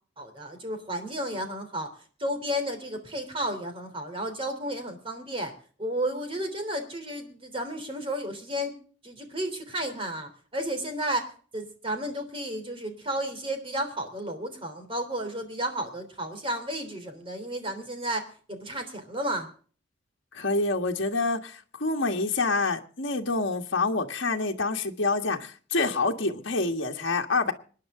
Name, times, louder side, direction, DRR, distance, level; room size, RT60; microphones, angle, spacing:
voice 1, 0.2-1.9 2.2-5.5 5.8-8.7 9.0-19.5, right 1 dB, 25° right, 3.5 m, -32 dB
voice 2, 20.3-27.5, left 3 dB, 60° left, 1.6 m, -27 dB
25.5 x 10.0 x 3.7 m
head